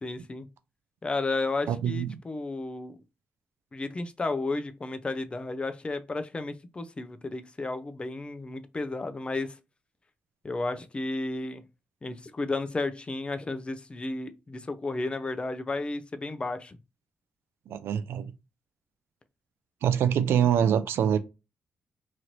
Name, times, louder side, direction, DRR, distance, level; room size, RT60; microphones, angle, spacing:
voice 1, 0.0-0.5 1.0-3.0 3.7-9.6 10.4-11.6 12.0-16.8, left 3 dB, 25° left, 0.5 m, -33 dB
voice 2, 1.7-2.1 17.7-18.3 19.8-21.2, right 9 dB, 80° right, 0.4 m, -25 dB
3.0 x 2.5 x 2.9 m
cardioid pair, 75°, 4 cm